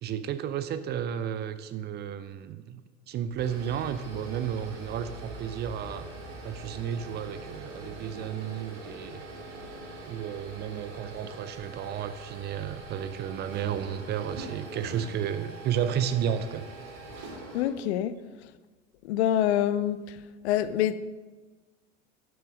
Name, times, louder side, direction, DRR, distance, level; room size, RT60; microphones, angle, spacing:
voice 1, 0.0-2.8 3.1-6.1 6.4-9.2 10.0-16.6, right 9 dB, 25° right, 0.5 m, -32 dB
sound 1, 3.2-17.7, right 2 dB, 40° right, 2.8 m, -43 dB
voice 2, 17.5-18.2 19.0-20.2 20.4-21.0, left 11 dB, 55° left, 0.6 m, -26 dB
10.0 x 6.2 x 6.1 m
figure-of-eight pair, 80°, 39 cm